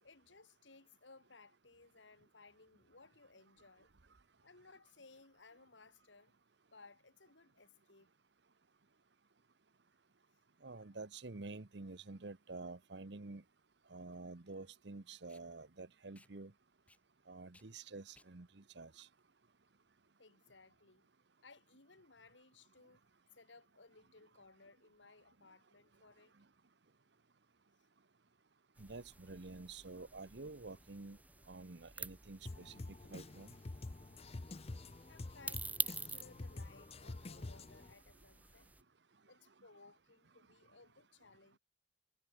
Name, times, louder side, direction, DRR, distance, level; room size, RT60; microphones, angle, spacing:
voice 1, 0.0-3.9 4.4-6.3 6.7-8.1 10.7-11.0 20.2-21.1 21.4-23.0 23.3-26.4 35.1-38.7 39.2-41.6, left 3 dB, 80° left, 2.6 m, -62 dB
voice 2, 10.6-13.4 13.9-16.5 17.3-19.1 28.8-31.2 31.5-33.5, right 3 dB, 65° right, 1.0 m, -49 dB
Packing tape duct tape, 12.5-20.0, left 2 dB, 5° left, 6.1 m, -71 dB
sound 1, 28.8-38.8, right 3 dB, 10° right, 0.7 m, -48 dB
Drum kit, 32.5-37.9, left 2 dB, 35° left, 0.6 m, -48 dB
head